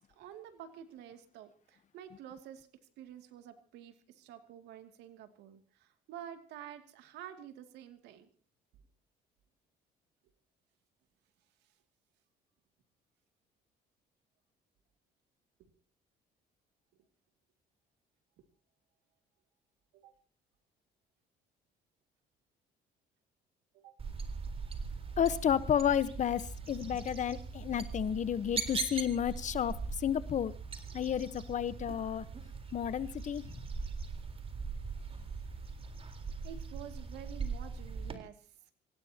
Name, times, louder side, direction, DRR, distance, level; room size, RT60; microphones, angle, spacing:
voice 1, 0.2-2.7 3.0-8.3 19.9-20.1 23.7-23.9 36.4-38.5, right 10 dB, 85° right, 7 dB, 2.5 m, -49 dB
sound 1, 24.0-38.2, right 5 dB, 35° right, 3.9 m, -41 dB
voice 2, 25.2-30.5 30.9-32.2 32.7-33.4, left 9 dB, 45° left, 15 dB, 1.1 m, -31 dB
27.0 x 17.0 x 2.9 m, 0.38 s
cardioid pair, 110°, 17 cm